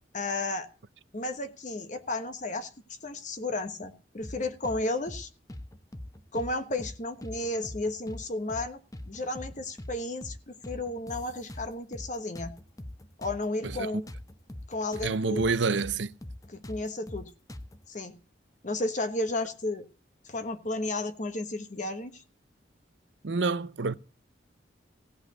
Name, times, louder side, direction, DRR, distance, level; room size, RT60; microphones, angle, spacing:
voice 1, 0.1-0.7 1.1-2.7 3.0-5.3 6.3-8.8 9.1-12.5 13.2-14.0 14.7-15.4 16.5-17.3 17.9-18.2 18.6-19.9 20.2-22.2, left 2 dB, 40° left, 1.2 m, -33 dB
sound 1, 4.2-4.8 5.1-5.2 5.5-6.5 6.8-6.9 7.2-8.2 8.5-8.7 8.9-9.9 10.2-10.4 10.6-12.1 12.4-15.1 15.4-15.5 15.8-17.8, left 1 dB, 20° left, 0.9 m, -42 dB
voice 2, 15.0-16.1 23.2-23.9, right 4 dB, 75° right, 0.7 m, -27 dB
16.5 x 5.6 x 8.1 m
head